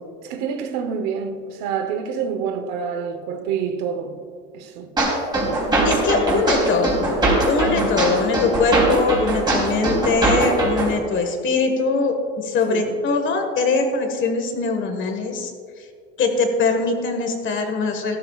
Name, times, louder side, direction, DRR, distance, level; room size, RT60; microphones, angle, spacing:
voice 1, 0.2-4.2 4.5-5.0 7.6-8.0 12.7-13.0, right 6 dB, 75° right, 1.1 m, -27 dB
sound 1, 5.0-11.0, right 2 dB, 15° right, 3.2 m, -21 dB
voice 2, 5.8-7.1 7.5-15.5 16.2-18.2, left 3 dB, 40° left, 1.6 m, -22 dB
14.5 x 13.0 x 2.4 m
cardioid pair, 145°, 29 cm